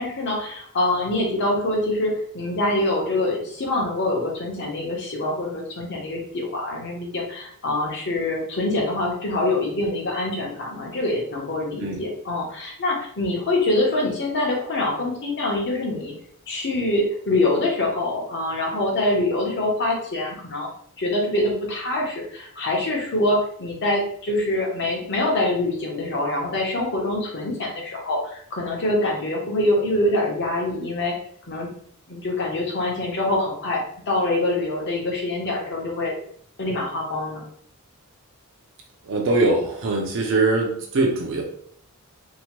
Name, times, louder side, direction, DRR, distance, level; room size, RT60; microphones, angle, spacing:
voice 1, 0.0-16.1 16.5-20.7 21.0-31.2 31.5-31.7 32.1-36.2 36.6-37.4, left 2 dB, 50° left, -1 dB, 0.8 m, -25 dB
voice 2, 39.0-41.4, right 2 dB, 60° right, 1 dB, 0.5 m, -22 dB
2.8 x 2.1 x 2.9 m, 0.62 s
head